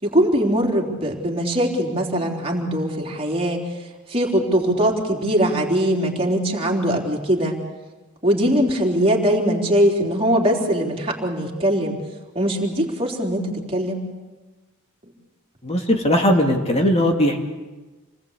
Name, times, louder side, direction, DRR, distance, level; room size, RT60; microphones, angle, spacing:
voice 1, 0.0-3.7 4.1-7.6 8.2-12.0 12.3-14.0, equal, 25° right, -1 dB, 3.9 m, -21 dB
voice 2, 15.6-17.4, equal, 30° left, 2 dB, 2.7 m, -18 dB
28.0 x 20.0 x 8.4 m, 1.2 s
head